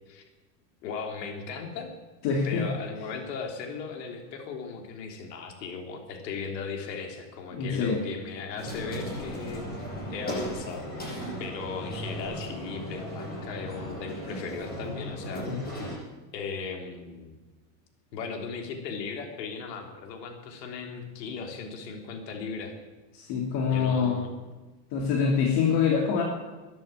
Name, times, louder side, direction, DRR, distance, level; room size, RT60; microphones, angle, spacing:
voice 1, 0.8-1.9 2.4-15.5 16.3-17.3 18.1-22.7 23.7-24.3, left 5 dB, 85° left, 4 dB, 3.4 m, -37 dB
voice 2, 2.2-2.6 7.5-8.0 15.5-15.6 23.1-24.2 24.9-26.2, left 6 dB, 55° left, 1 dB, 3.0 m, -25 dB
sound 1, 8.6-16.0, equal, 20° left, 7.4 m, -36 dB
13.5 x 11.0 x 8.9 m, 1.2 s
supercardioid pair, 130°, 48 cm